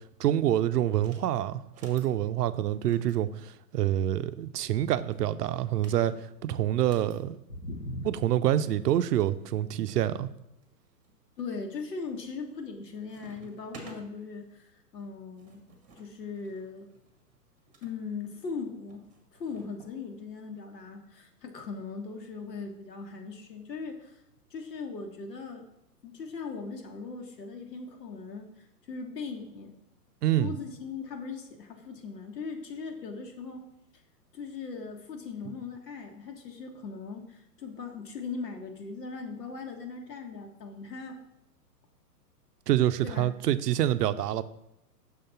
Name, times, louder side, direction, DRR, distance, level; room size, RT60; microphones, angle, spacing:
voice 1, 0.2-6.1 6.4-7.4 8.0-10.3 30.2-30.5 42.7-44.4, right 12 dB, 75° right, 0.6 m, -26 dB
sound 1, 0.9-1.3 1.6-2.1 2.7-4.1 4.9-7.2 8.3-8.4 8.6-8.7 9.3-10.1 10.6-11.1 11.7-12.0 12.4-12.8 13.1-14.0 15.0-17.9 18.9-20.0, right 2 dB, 15° right, 1.0 m, -53 dB
voice 2, 7.5-8.1 11.4-15.6 16.0-16.9 17.8-19.1 19.3-24.2 24.5-25.7 26.0-28.5 28.9-29.7 30.4-33.6 34.3-41.2 43.0-43.3, left 4 dB, 80° left, 1.5 m, -39 dB
6.4 x 3.8 x 5.6 m
hypercardioid pair, 130°, 49 cm